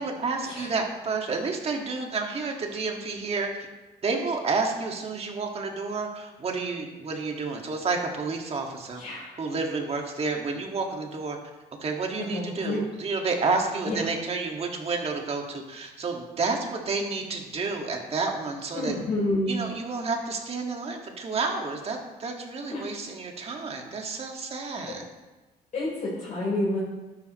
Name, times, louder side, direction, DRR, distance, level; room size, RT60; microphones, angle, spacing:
voice 1, 0.0-3.7 4.0-9.0 9.4-11.4 11.8-19.0 19.5-25.0, right 4 dB, 35° right, 2 dB, 1.9 m, -30 dB
voice 2, 9.0-9.3 12.3-12.8 13.9-14.1 18.7-19.5 22.7-22.8 24.8-24.9 25.7-26.8, left 2 dB, 45° left, -7 dB, 3.8 m, -29 dB
12.5 x 11.0 x 3.1 m, 1.1 s
cardioid pair, 110°, 17 cm